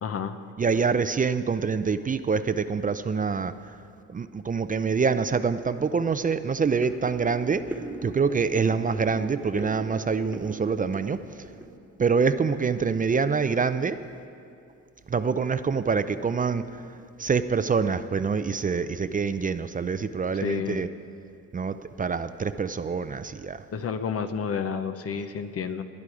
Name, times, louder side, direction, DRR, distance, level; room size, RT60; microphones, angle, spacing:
voice 1, 0.0-0.4 20.4-20.8 23.7-25.8, left 6 dB, 50° left, 9 dB, 0.9 m, -30 dB
voice 2, 0.6-3.5 4.1-11.2 12.0-14.0 15.1-16.7 17.2-20.9 21.5-23.6, right 5 dB, 25° right, 11 dB, 0.5 m, -26 dB
sound 1, 5.3-5.4 5.8-6.0 6.3-12.9 13.1-13.8 14.1-14.4 14.7-14.8 15.2-15.4 15.7-15.9 16.4-16.9 17.5-17.7 18.0-18.7 19.0-19.1, right 2 dB, 5° right, 1.4 m, -41 dB
20.0 x 11.0 x 4.9 m, 2.4 s
cardioid pair, 90°, 30 cm